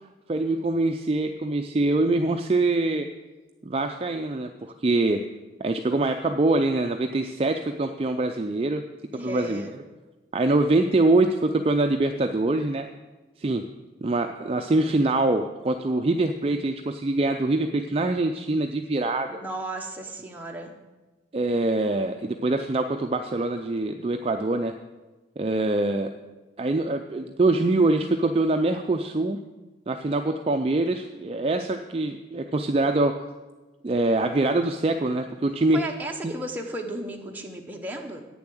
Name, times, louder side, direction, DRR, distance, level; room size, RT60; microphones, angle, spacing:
voice 1, 0.3-3.1 3.7-5.2 5.6-8.8 9.2-9.7 10.3-12.8 13.4-13.6 14.0-19.4 21.3-24.7 25.4-26.1 26.6-29.4 29.9-33.3 33.8-35.8 36.2-36.3, right 2 dB, 30° right, 5 dB, 0.4 m, -24 dB
voice 2, 9.1-9.8 19.3-20.8 35.7-38.2, right 1 dB, 10° right, 1 dB, 0.9 m, -34 dB
8.9 x 7.1 x 7.7 m, 1.2 s
head